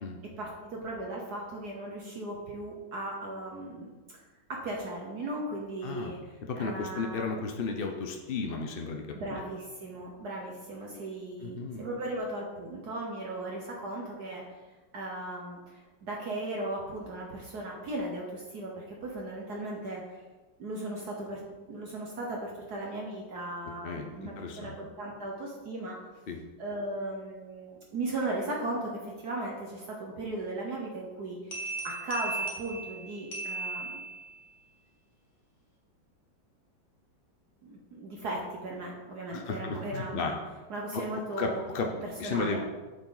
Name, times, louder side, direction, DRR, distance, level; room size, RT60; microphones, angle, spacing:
voice 1, 0.4-4.2 4.5-7.4 9.1-14.4 14.9-20.2 20.6-21.4 21.7-26.1 26.6-34.1 37.7-40.4 40.7-41.6 42.0-42.6, right 2 dB, 55° right, -2 dB, 1.6 m, -37 dB
voice 2, 5.8-6.1 6.4-9.4 11.4-11.8 23.8-24.1 24.4-24.7 26.3-26.4 39.3-40.3 40.9-41.1 41.4-41.9 42.2-42.6, left 4 dB, 65° left, 3 dB, 0.5 m, -34 dB
sound 1, 31.5-34.5, right 3 dB, 40° left, 2.1 m, -37 dB
8.2 x 7.2 x 4.0 m, 1.2 s
omnidirectional pair, 2.1 m